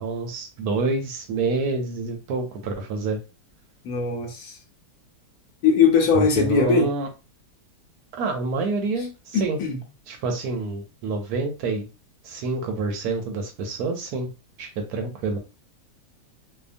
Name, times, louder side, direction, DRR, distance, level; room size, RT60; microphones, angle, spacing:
voice 1, 0.0-3.2 6.1-7.1 8.1-9.6 10.1-11.9 12.2-14.3 14.6-15.4, right 3 dB, 75° right, 1.0 m, -27 dB
voice 2, 3.8-4.6 5.6-6.9 9.3-9.8, left 5 dB, 70° left, 1.0 m, -20 dB
2.8 x 2.2 x 2.5 m
omnidirectional pair, 1.8 m